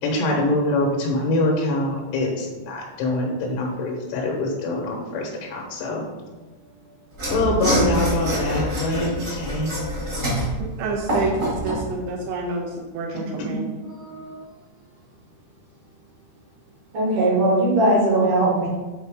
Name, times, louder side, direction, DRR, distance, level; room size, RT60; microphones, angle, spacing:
voice 1, 0.0-6.1 7.3-9.7 13.5-13.6, left 1 dB, 90° left, -1 dB, 3.4 m, -24 dB
Mechanisms / Sawing, 7.1-11.9, equal, 45° right, 0.9 m, -25 dB
voice 2, 10.8-12.7 12.9-13.6, right 3 dB, 80° right, 0 dB, 3.3 m, -28 dB
voice 3, 13.9-14.4 16.9-18.7, right 1 dB, 60° right, -4 dB, 2.3 m, -20 dB
7.9 x 4.1 x 3.5 m, 1.2 s
omnidirectional pair, 5.2 m